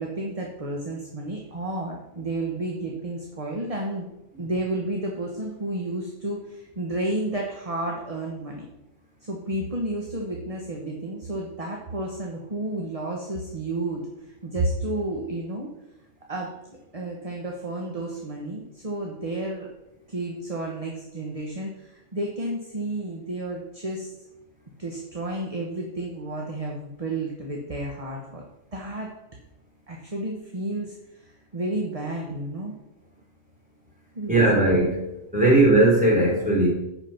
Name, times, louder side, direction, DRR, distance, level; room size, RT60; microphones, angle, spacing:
voice 1, 0.0-4.1 4.4-8.6 9.2-14.0 14.4-15.7 16.3-16.5 16.9-19.7 20.1-24.1 24.8-28.4 28.7-29.1 29.9-32.7 34.1-34.4 35.3-35.5, right 2 dB, 30° right, -1 dB, 1.2 m, -31 dB
voice 2, 34.3-35.0 35.3-36.7, right 2 dB, 5° right, -4 dB, 3.6 m, -18 dB
10.5 x 5.0 x 5.8 m, 0.90 s
omnidirectional pair, 1.3 m